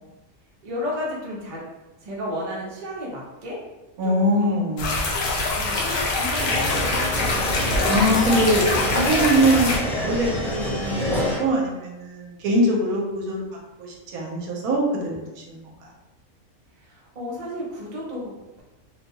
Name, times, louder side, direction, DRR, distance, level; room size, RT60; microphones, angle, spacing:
voice 1, 0.6-1.6 2.0-3.6 4.0-4.6 5.3-7.8 16.8-18.6, left 1 dB, 40° right, -6 dB, 0.7 m, -33 dB
voice 2, 4.0-5.0 7.9-13.4 13.8-15.9, right 1 dB, 85° right, -1 dB, 1.1 m, -23 dB
sound 1, 4.8-9.8, left 2 dB, 60° left, 0.7 m, -24 dB
sound 2, 6.4-11.4, equal, 40° left, 1.1 m, -27 dB
2.7 x 2.2 x 2.9 m, 1.0 s
omnidirectional pair, 1.5 m